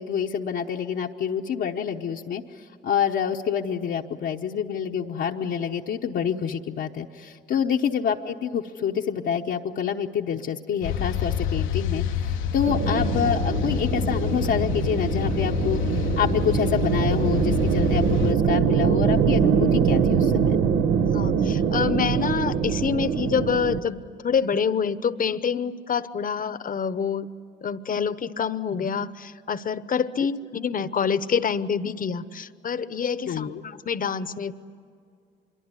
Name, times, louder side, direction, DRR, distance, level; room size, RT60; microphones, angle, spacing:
voice 1, 0.0-20.6 33.3-33.6, left 8 dB, 65° left, -1 dB, 1.0 m, -27 dB
sound 1, 10.8-18.3, left 8 dB, 90° left, 1.0 m, -27 dB
sound 2, 12.7-23.8, right 7 dB, 90° right, 1.2 m, -23 dB
voice 2, 21.0-27.3 27.6-34.5, left 6 dB, 45° left, 14 dB, 1.0 m, -27 dB
25.5 x 23.0 x 9.8 m, 2.3 s
cardioid pair, 90°, 20 cm